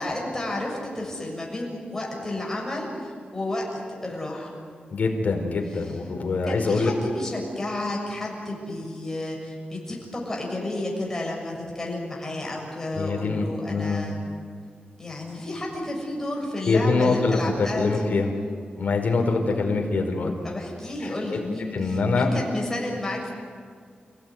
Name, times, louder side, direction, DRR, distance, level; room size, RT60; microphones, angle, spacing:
voice 1, 0.0-3.7 4.0-4.6 6.5-14.2 15.0-18.1 20.4-23.3, left 1 dB, 15° left, -2 dB, 7.1 m, -31 dB
voice 2, 4.9-6.9 12.9-14.1 16.6-18.3 18.8-20.3 21.0-21.4 21.7-22.3, left 3 dB, 60° left, 2 dB, 4.7 m, -24 dB
30.0 x 17.5 x 9.5 m, 2.1 s
wide cardioid pair, 175°, 3 cm